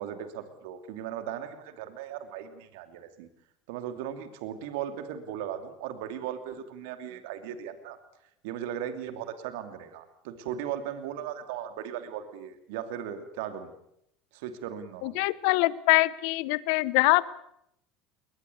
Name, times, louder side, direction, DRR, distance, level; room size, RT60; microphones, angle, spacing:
voice 1, 0.0-3.3 3.7-8.0 8.4-13.7 14.3-15.2, right 9 dB, 80° right, 9 dB, 2.7 m, -37 dB
voice 2, 15.0-17.4, left 21 dB, 75° left, 19 dB, 1.0 m, -24 dB
21.5 x 20.5 x 8.6 m, 0.75 s
supercardioid pair, 95°, 0 cm